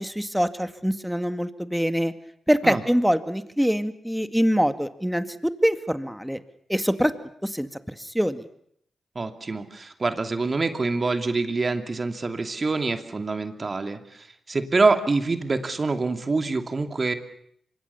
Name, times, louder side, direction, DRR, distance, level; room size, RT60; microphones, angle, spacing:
voice 1, 0.0-2.1 2.5-6.4 6.7-7.1 7.4-7.7 8.0-8.5, equal, ahead, 10 dB, 2.0 m, -24 dB
voice 2, 9.1-17.1, right 3 dB, 45° right, 7 dB, 2.7 m, -25 dB
25.5 x 23.0 x 7.0 m, 0.68 s
cardioid pair, 50°, 0 cm